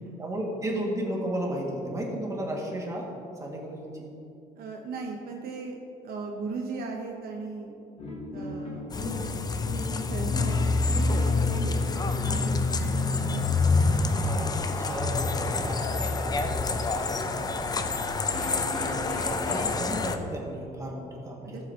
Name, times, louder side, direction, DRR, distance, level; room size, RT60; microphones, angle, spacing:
voice 1, 0.2-3.1 3.4-3.9 14.1-17.6 18.5-21.6, right 1 dB, 20° right, -2 dB, 1.9 m, -34 dB
voice 2, 4.6-5.8 6.0-7.7 8.3-8.9 10.1-11.8 12.2-13.5 21.4-21.6, right 4 dB, 65° right, 1 dB, 0.9 m, -37 dB
sound 1, 8.0-19.7, left 2 dB, 40° left, 2.1 m, -40 dB
sound 2, 8.9-20.2, left 3 dB, 25° left, 0.6 m, -27 dB
14.0 x 7.8 x 2.9 m, 2.7 s
cardioid pair, 110°, 17 cm